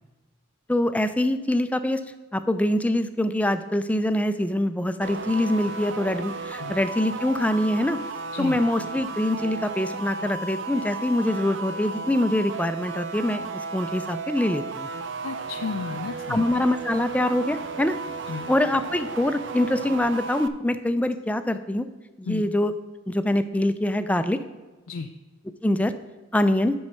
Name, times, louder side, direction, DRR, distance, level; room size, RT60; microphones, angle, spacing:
voice 1, 0.7-2.0 2.3-8.0 8.4-14.9 16.3-17.9 18.5-21.9 22.2-22.7 23.1-24.4 25.6-25.9 26.3-26.7, left 1 dB, 5° left, 10 dB, 0.3 m, -24 dB
sound 1, 5.0-20.5, right 4 dB, 60° right, 0.5 m, -34 dB
voice 2, 15.2-16.4 18.3-18.4 22.2-22.4 24.9-25.1, left 5 dB, 75° left, 5 dB, 0.4 m, -32 dB
7.4 x 5.4 x 6.2 m, 1.2 s
head